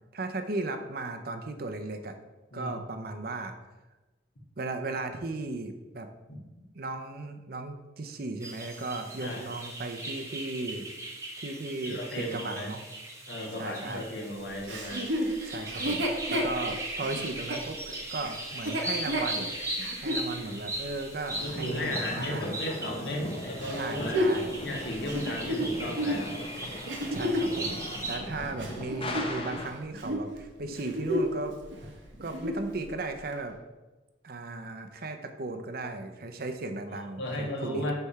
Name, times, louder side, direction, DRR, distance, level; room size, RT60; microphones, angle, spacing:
voice 1, 0.1-2.1 2.5-3.6 4.6-6.1 6.7-10.9 11.4-12.8 13.6-14.0 15.4-19.5 20.0-22.6 23.7-24.6 27.1-27.8 28.1-31.6 32.2-33.6 34.2-37.9, right 2 dB, 55° right, 7 dB, 0.7 m, -36 dB
sound 1, 8.4-28.2, right 1 dB, 15° right, 1.0 m, -39 dB
voice 2, 11.9-12.7 13.3-15.0 21.4-24.2 24.6-26.4 28.2-28.3 37.2-37.9, left 1 dB, 70° left, -1 dB, 1.7 m, -35 dB
Chuckle chortle, 14.7-20.3 20.8-20.9 23.6-27.6 28.2-29.7 29.9-30.3 30.7-31.4 31.7-31.8 32.2-32.7 33.3-33.4, equal, 85° right, 1.2 m, -31 dB
sound 2, 21.3-29.7, left 1 dB, 30° left, 0.8 m, -39 dB
8.2 x 3.4 x 5.6 m, 1.1 s
head